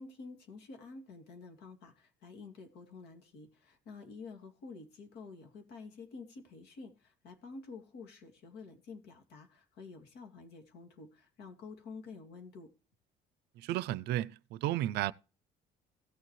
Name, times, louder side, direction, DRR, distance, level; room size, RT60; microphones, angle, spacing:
voice 1, 0.0-12.7, left 4 dB, 80° left, 2.5 m, -49 dB
voice 2, 13.6-15.1, right 14 dB, 80° right, 0.5 m, -33 dB
16.5 x 7.3 x 3.1 m
cardioid pair, 110°, 17 cm